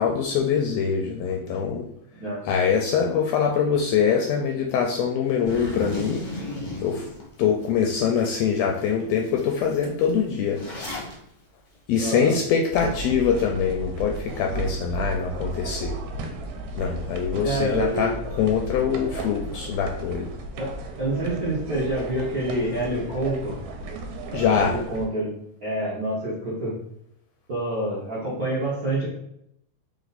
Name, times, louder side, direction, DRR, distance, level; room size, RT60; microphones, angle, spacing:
voice 1, 0.0-1.9 2.4-6.3 6.8-7.0 7.4-10.6 11.9-16.0 16.7-20.3 24.3-24.8, left 7 dB, 80° left, 1 dB, 1.5 m, -24 dB
Zipper (clothing), 5.5-7.7 8.2-8.3 8.7-8.9 9.1-11.1, left 1 dB, 60° left, 0.7 m, -34 dB
voice 2, 12.0-12.3 12.8-12.9 17.4-18.1 20.6-23.6 24.5-25.3 25.6-26.7 27.5-29.1, right 1 dB, 55° right, -8 dB, 1.0 m, -27 dB
sound 1, 12.7-25.1, right 2 dB, 80° right, 1.9 m, -34 dB
4.4 x 2.9 x 4.0 m, 0.74 s
omnidirectional pair, 3.4 m